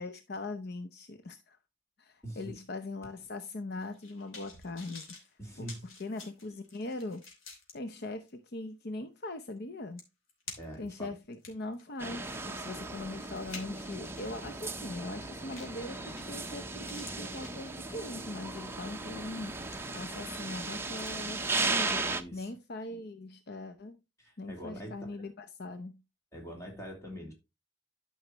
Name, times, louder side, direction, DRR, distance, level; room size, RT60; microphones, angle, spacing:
voice 1, 0.0-1.6 2.0-5.2 5.6-7.2 7.7-10.0 10.8-24.0 24.4-26.0, left 2 dB, 55° left, 0.7 m, -41 dB
voice 2, 2.2-2.5 5.4-5.9 10.6-11.1 22.1-22.5 24.2-24.9 26.3-27.3, equal, 15° left, 3.0 m, -43 dB
sound 1, 3.8-7.7 8.3-8.4 9.6-9.7 10.0-10.9 11.3-14.4 15.5-15.8 16.2-16.6 16.8-18.2 18.7-18.9 19.4-20.3 20.6-22.1 22.5-22.6, left 4 dB, 85° left, 3.0 m, -50 dB
sound 2, 12.0-22.2, right 3 dB, 10° right, 0.7 m, -36 dB
12.0 x 5.6 x 3.0 m
head